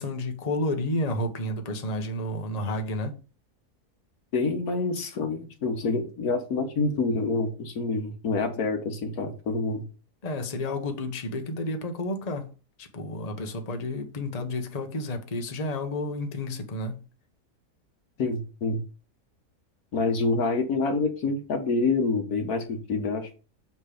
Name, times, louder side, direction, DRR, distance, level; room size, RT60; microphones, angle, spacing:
voice 1, 0.0-3.1 10.2-12.5 12.8-17.0, left 1 dB, 30° left, 1.1 m, -31 dB
voice 2, 4.3-9.8 18.2-18.8 19.9-23.3, left 3 dB, 75° left, 1.7 m, -27 dB
6.9 x 4.8 x 5.0 m
omnidirectional pair, 1.6 m